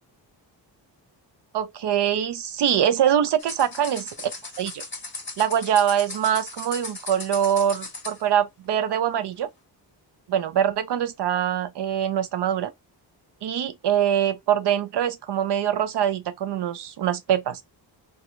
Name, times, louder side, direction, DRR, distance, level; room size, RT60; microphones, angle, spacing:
voice 1, 1.5-4.3 4.6-4.8 5.4-9.5 10.3-12.7 13.4-17.6, right 9 dB, 65° right, 0.6 m, -23 dB
sound 1, 3.4-8.2, left 3 dB, 25° left, 1.2 m, -38 dB
2.9 x 2.3 x 2.4 m
wide cardioid pair, 110°, 44 cm